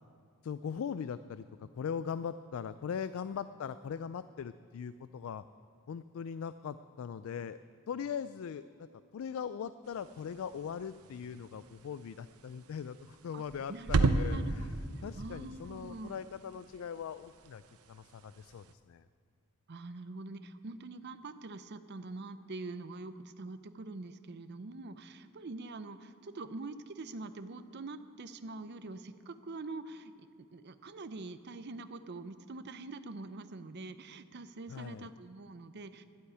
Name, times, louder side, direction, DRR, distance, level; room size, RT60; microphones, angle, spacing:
voice 1, 0.4-1.5 1.7-5.4 5.9-7.6 7.9-8.9 9.1-14.7 15.0-17.6 17.9-19.1 34.7-35.1, left 7 dB, 65° left, 14 dB, 0.3 m, -40 dB
sound 1, 9.8-18.7, right 3 dB, 90° right, 0.7 m, -37 dB
voice 2, 13.7-16.2 19.7-36.0, right 3 dB, 50° right, 11 dB, 0.6 m, -45 dB
11.5 x 8.1 x 10.0 m, 2.4 s
head